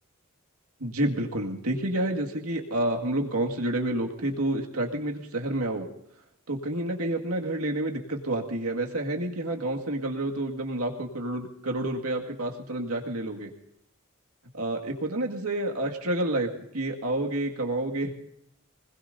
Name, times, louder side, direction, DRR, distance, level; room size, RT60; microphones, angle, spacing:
voice 1, 0.8-5.9 6.5-13.5 14.5-18.1, right 1 dB, 85° right, 1 dB, 2.1 m, -29 dB
25.5 x 20.0 x 2.7 m, 0.74 s
head